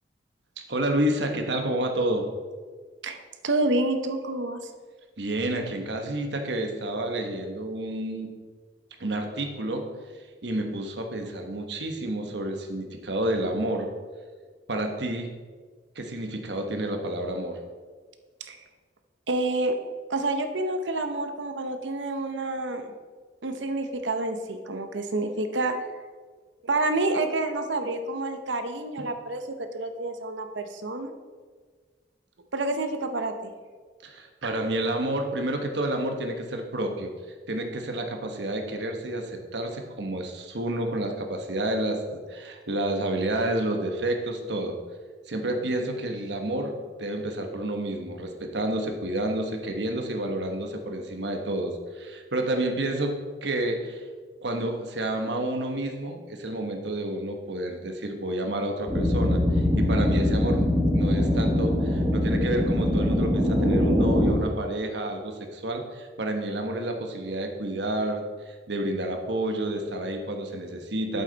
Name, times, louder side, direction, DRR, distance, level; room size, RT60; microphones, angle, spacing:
voice 1, 0.7-2.3 5.2-8.3 9.0-9.9 10.4-13.9 14.7-15.3 15.9-17.6 29.0-29.1 34.0-37.1 37.5-44.8 45.3-54.0 54.4-71.2, right 1 dB, 75° right, 4 dB, 1.2 m, -30 dB
voice 2, 3.0-4.6 18.4-18.6 19.3-19.8 20.1-22.9 23.4-25.8 26.6-29.4 29.7-31.1 32.5-33.3 34.4-34.6, right 2 dB, 90° right, 7 dB, 0.9 m, -28 dB
sound 1, 58.9-64.3, left 1 dB, 10° right, 2.2 m, -23 dB
8.2 x 8.0 x 4.0 m, 1.5 s
head